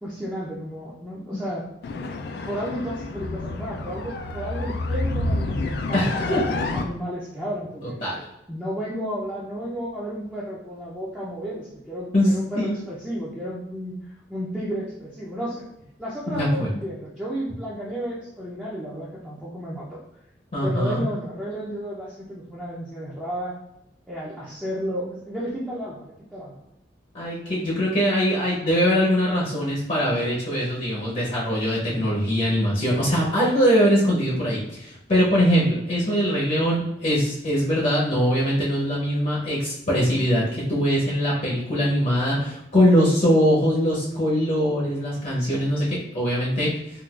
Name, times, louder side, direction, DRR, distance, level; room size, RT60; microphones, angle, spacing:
voice 1, 0.0-1.7 2.5-8.0 8.5-15.6 16.0-20.0 20.6-23.5 24.1-26.6, equal, 5° right, -8 dB, 0.5 m, -32 dB
sound 1, 1.8-6.8, left 2 dB, 65° left, 0.3 m, -28 dB
voice 2, 5.9-6.4 8.0-8.2 12.1-12.8 16.3-16.7 20.5-21.0 27.1-46.7, equal, 45° left, -5 dB, 0.7 m, -22 dB
3.8 x 2.4 x 2.3 m, 0.80 s
head